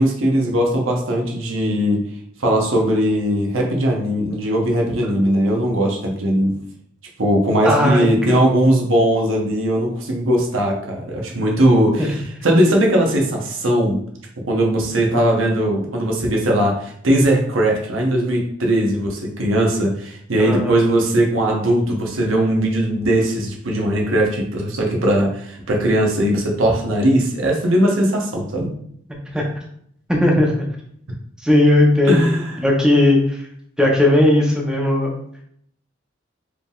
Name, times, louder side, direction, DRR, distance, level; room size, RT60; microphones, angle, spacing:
voice 1, 0.0-2.0 2.4-6.5 7.2-14.0 14.4-28.7 32.1-32.5, right 1 dB, 90° right, 0 dB, 0.9 m, -19 dB
voice 2, 7.6-8.4 12.0-12.1 20.4-20.7 29.3-29.4 30.1-30.5 31.4-33.4 33.8-35.1, left 1 dB, 5° right, -1 dB, 0.7 m, -17 dB
4.8 x 3.4 x 2.4 m, 0.67 s
head